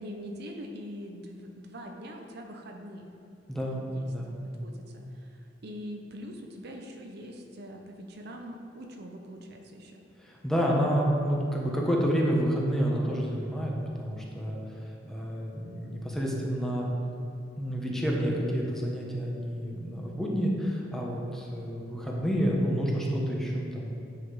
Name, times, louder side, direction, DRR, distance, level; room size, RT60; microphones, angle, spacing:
voice 1, 0.0-3.1 3.9-4.1 4.4-10.0, equal, 60° right, 3 dB, 0.8 m, -43 dB
voice 2, 3.5-3.8 4.1-4.3 10.2-16.9 17.6-23.9, equal, ahead, -3 dB, 1.2 m, -29 dB
9.1 x 5.8 x 4.8 m, 2.7 s
head